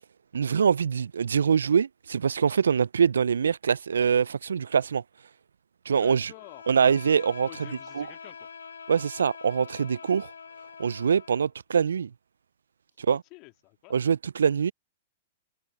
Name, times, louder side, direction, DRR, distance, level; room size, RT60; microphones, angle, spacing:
voice 1, 0.3-5.0 5.9-6.3 6.7-7.5 8.0-8.1 8.9-10.3 10.8-12.1 13.0-13.2 13.9-14.7, right 7 dB, 75° right, 0.5 m, -24 dB
voice 2, 6.0-6.6 7.5-8.5 13.1-14.1, left 27 dB, 40° left, 2.6 m, -49 dB
Bowed string instrument, 6.3-11.5, left 6 dB, 75° left, 7.5 m, -44 dB
figure-of-eight pair, 105°, 0 cm